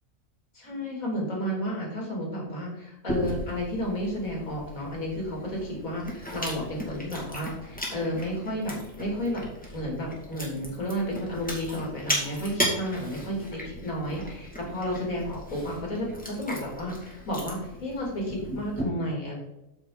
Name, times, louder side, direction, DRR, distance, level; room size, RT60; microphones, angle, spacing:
voice 1, 0.5-9.4 9.7-19.3, equal, 80° left, -2 dB, 3.3 m, -32 dB
Chewing mastication, 3.1-18.8, equal, 5° left, 2.2 m, -36 dB
8.3 x 7.6 x 4.0 m, 0.93 s
omnidirectional pair, 1.4 m